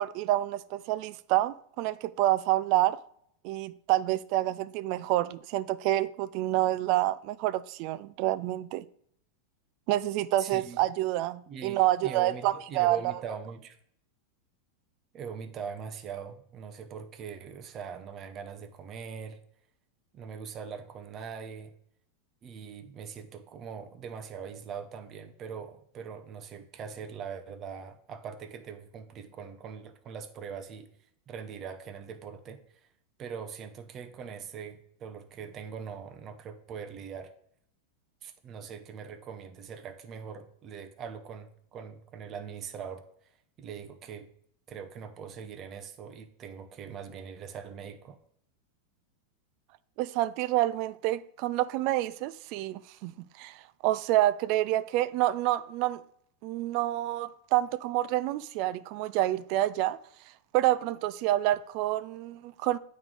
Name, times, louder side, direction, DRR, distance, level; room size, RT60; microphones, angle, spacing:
voice 1, 0.0-3.0 3.4-8.9 9.9-13.0 50.0-56.0 56.4-60.0 60.5-62.8, right 15 dB, 50° right, 0.3 m, -28 dB
voice 2, 10.4-10.8 11.5-13.8 15.1-19.4 20.1-21.7 22.4-30.9 31.3-32.9 33.2-37.3 38.2-43.0 43.6-44.3 44.7-48.2, right 6 dB, 30° right, 0.7 m, -42 dB
8.8 x 3.2 x 3.7 m
supercardioid pair, 140°, 0 cm